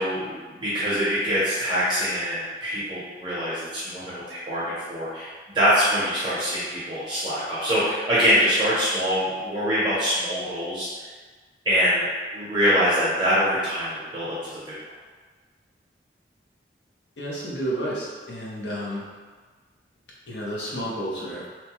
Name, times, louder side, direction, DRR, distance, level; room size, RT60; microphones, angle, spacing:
voice 1, 0.0-10.9 11.6-14.7, equal, 25° right, -10 dB, 0.7 m, -24 dB
voice 2, 17.2-19.0 20.3-21.5, equal, 75° left, -5 dB, 0.7 m, -31 dB
2.9 x 2.2 x 2.9 m, 1.4 s
head